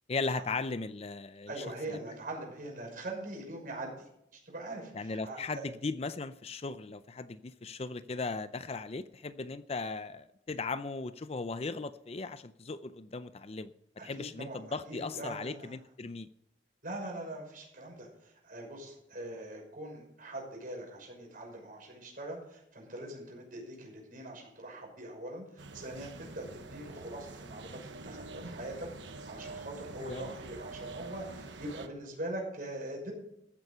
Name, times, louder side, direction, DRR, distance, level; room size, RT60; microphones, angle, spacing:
voice 1, 0.1-2.0 4.9-13.7 14.0-16.3 30.0-30.3, left 3 dB, 35° left, 13 dB, 0.5 m, -37 dB
voice 2, 1.5-4.1 4.5-5.6 14.0-15.8 16.8-33.1, right 1 dB, 50° right, 0 dB, 5.9 m, -42 dB
sound 1, 25.6-31.9, right 3 dB, 80° right, 1.2 m, -46 dB
14.5 x 9.3 x 5.6 m, 0.78 s
head